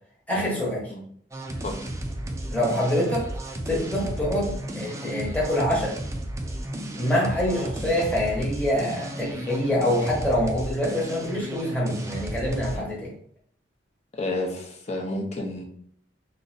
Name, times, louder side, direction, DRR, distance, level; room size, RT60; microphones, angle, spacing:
voice 1, 0.3-0.9 2.5-3.2 3.6-5.9 7.0-13.1, left 1 dB, 10° left, -6 dB, 0.9 m, -25 dB
sound 1, 1.3-12.8, right 1 dB, 15° right, 0.3 m, -33 dB
voice 2, 14.1-15.6, left 2 dB, 35° left, 1 dB, 0.6 m, -30 dB
2.5 x 2.1 x 3.9 m, 0.63 s
head